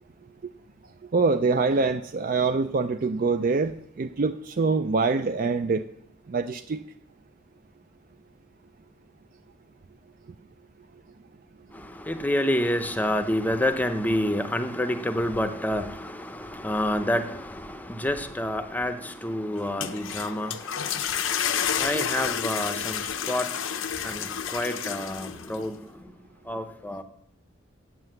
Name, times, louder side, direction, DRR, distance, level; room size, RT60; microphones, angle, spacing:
voice 1, 1.1-5.8 6.3-6.8, right 4 dB, 45° right, 0.4 m, -24 dB
voice 2, 11.7-26.1 26.4-27.0, left 1 dB, 10° left, 0.6 m, -29 dB
sound 1, 19.6-25.6, left 8 dB, 90° left, 0.7 m, -30 dB
8.1 x 7.7 x 7.7 m
head